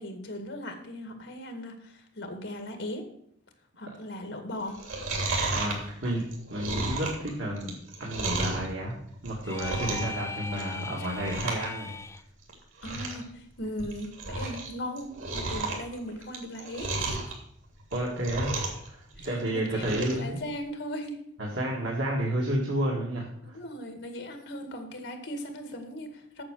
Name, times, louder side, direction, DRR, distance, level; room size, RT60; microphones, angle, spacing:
voice 1, 0.0-3.1 3.8-4.8 11.0-11.1 12.8-17.2 19.2-21.2 23.4-26.4, equal, 70° left, 5 dB, 2.0 m, -38 dB
Chewing mastication, 4.7-8.7 9.1-10.2 10.5-10.8 11.1-11.7 12.0-12.1 12.5-12.6 12.8-13.2 13.6-14.7 15.0-17.3 17.8-18.9 19.1-20.2 20.6-20.7, right 2 dB, 90° right, 3.0 m, -33 dB
voice 2, 5.5-9.0 9.2-11.9 17.9-18.6 18.8-20.4 21.4-23.6, right 1 dB, 75° right, -3 dB, 2.2 m, -31 dB
sound 1, 9.4-12.2, left 3 dB, 15° left, 0.3 m, -39 dB
8.7 x 7.1 x 6.4 m, 0.69 s
head